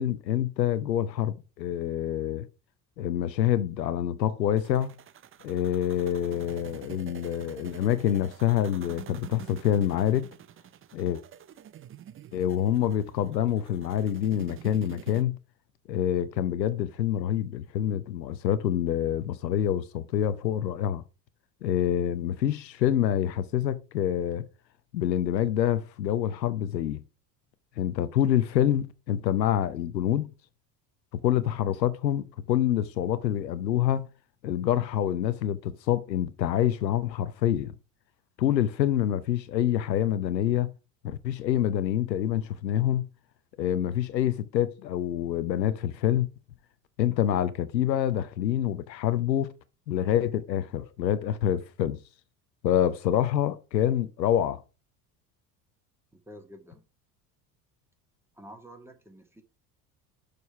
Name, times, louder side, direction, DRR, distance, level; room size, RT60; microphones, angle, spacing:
voice 1, 0.0-2.5 3.0-4.9 5.4-10.3 10.9-11.2 12.3-15.4 15.9-21.0 21.6-24.4 24.9-27.0 27.8-30.3 31.2-34.1 34.4-37.7 38.4-40.7 41.0-43.1 43.6-46.3 47.0-49.5 49.9-52.0 52.6-54.6, left 11 dB, 85° left, 0.7 m, -26 dB
sound 1, 4.6-15.2, right 10 dB, 25° right, 0.6 m, -47 dB
voice 2, 56.1-56.8 58.3-59.4, equal, 5° right, 1.9 m, -49 dB
6.5 x 5.2 x 5.7 m
hypercardioid pair, 65°, 49 cm